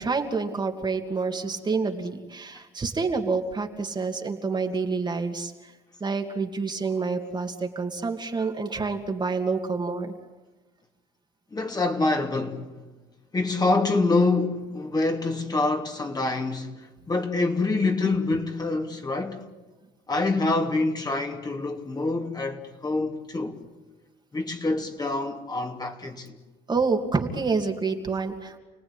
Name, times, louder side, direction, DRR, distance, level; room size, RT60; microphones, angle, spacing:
voice 1, 0.0-5.7 6.0-10.1 26.7-28.6, right 4 dB, 25° right, 2.7 m, -28 dB
voice 2, 11.5-12.7 13.3-19.4 20.1-23.6 24.3-26.4, left 3 dB, 25° left, 2.9 m, -26 dB
30.0 x 19.0 x 10.0 m
cardioid pair, 110°, 17 cm